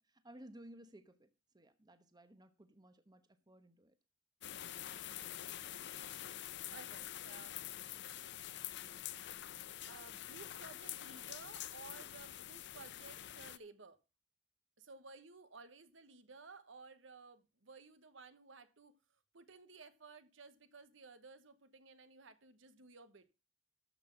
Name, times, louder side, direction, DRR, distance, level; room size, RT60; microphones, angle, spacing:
voice 1, 0.0-4.0, right 1 dB, 20° right, 1.0 m, -58 dB
sound 1, 4.4-13.6, left 12 dB, 60° left, 0.6 m, -46 dB
voice 2, 4.8-5.5 6.7-7.8 9.8-14.0 14.8-23.3, right 4 dB, 70° right, 1.2 m, -56 dB
13.0 x 6.0 x 5.8 m
head